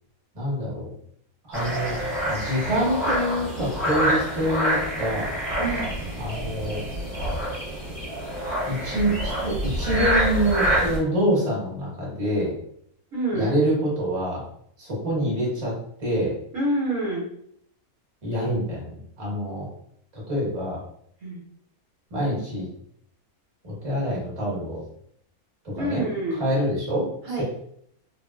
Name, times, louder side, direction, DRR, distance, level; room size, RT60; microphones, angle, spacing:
voice 1, 0.3-0.9 1.5-2.0 2.2-5.3 6.2-6.8 8.7-12.5 13.3-14.4 14.8-15.7 16.0-16.3 18.2-19.7 20.1-20.8 22.1-22.7 23.6-24.8 25.8-26.0 26.4-27.4, equal, 25° right, -5 dB, 1.1 m, -26 dB
sound 1, 1.5-11.0, equal, ahead, 1.1 m, -26 dB
voice 2, 5.6-5.9 13.1-13.5 16.5-17.3 21.2-21.4 25.8-26.4 27.2-27.4, right 1 dB, 65° right, -5 dB, 1.2 m, -27 dB
3.3 x 2.4 x 2.3 m, 0.69 s
omnidirectional pair, 1.6 m